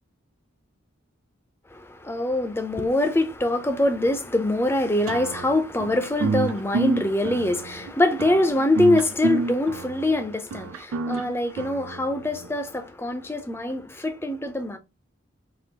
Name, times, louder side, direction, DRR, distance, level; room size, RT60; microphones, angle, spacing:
voice 1, 1.7-14.8, left 1 dB, 10° left, 0.6 m, -24 dB
sound 1, 5.1-12.5, right 3 dB, 85° right, 0.4 m, -29 dB
6.1 x 2.9 x 2.9 m
head